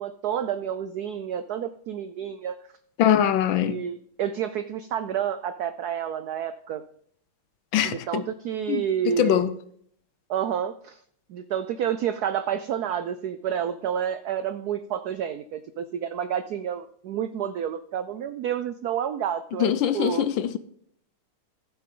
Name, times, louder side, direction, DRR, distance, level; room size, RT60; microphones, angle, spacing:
voice 1, 0.0-2.6 3.6-6.8 7.8-9.4 10.3-11.0 11.3-20.3, right 9 dB, 85° right, 0.8 m, -29 dB
voice 2, 3.0-3.8 7.7-8.3 8.7-8.8 9.2-9.5 19.6-20.6, left 10 dB, 75° left, 1.4 m, -22 dB
15.0 x 7.6 x 3.8 m
omnidirectional pair, 2.3 m